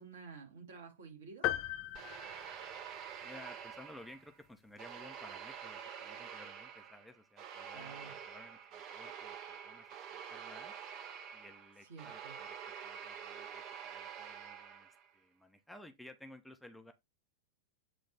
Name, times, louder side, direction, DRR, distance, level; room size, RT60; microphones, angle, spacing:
voice 1, 0.0-1.5 7.7-8.1 11.9-12.3, right 5 dB, 60° right, 2.7 m, -51 dB
sound 1, 1.4-3.2, left 14 dB, 40° left, 0.4 m, -38 dB
sound 2, 2.0-4.4 4.8-15.1, right 8 dB, 35° right, 0.9 m, -47 dB
voice 2, 3.2-10.8 11.3-16.9, left 1 dB, ahead, 0.8 m, -56 dB
8.1 x 3.2 x 4.1 m
figure-of-eight pair, 90°, 0 cm